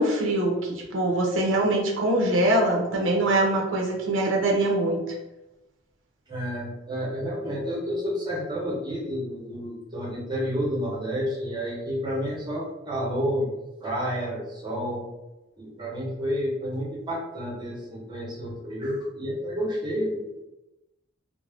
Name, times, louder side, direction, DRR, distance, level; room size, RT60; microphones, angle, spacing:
voice 1, 0.0-5.0, right 1 dB, 75° right, -1 dB, 0.6 m, -23 dB
voice 2, 6.3-13.5 13.8-15.0 15.6-20.3, equal, 25° right, -3 dB, 0.8 m, -30 dB
2.4 x 2.0 x 3.3 m, 0.98 s
head